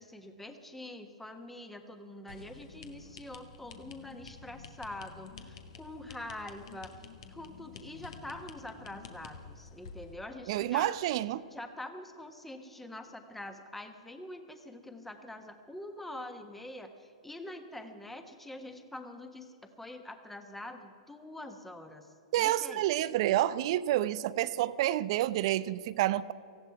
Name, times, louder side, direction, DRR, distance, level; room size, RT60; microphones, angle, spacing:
voice 1, 0.0-6.9 7.3-10.9 11.5-22.8, left 1 dB, 5° left, 6 dB, 1.3 m, -45 dB
sound 1, 2.3-10.1, left 5 dB, 60° left, 1.5 m, -50 dB
voice 2, 10.5-11.4 22.3-26.3, right 14 dB, 50° right, 17 dB, 0.5 m, -29 dB
18.5 x 15.5 x 4.8 m, 2.5 s
hypercardioid pair, 115°, 4 cm